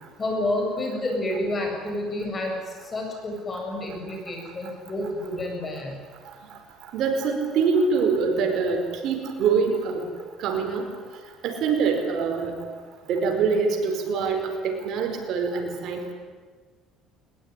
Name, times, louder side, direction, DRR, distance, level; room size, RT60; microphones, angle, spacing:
voice 1, 0.2-2.6 2.8-6.0, left 1 dB, 25° left, 2 dB, 7.8 m, -29 dB
voice 2, 6.9-10.1 10.4-10.9 11.4-12.5 13.1-16.1, right 5 dB, 60° right, 4 dB, 4.7 m, -24 dB
21.0 x 20.5 x 9.9 m, 1.5 s
cardioid pair, 120°, 0 cm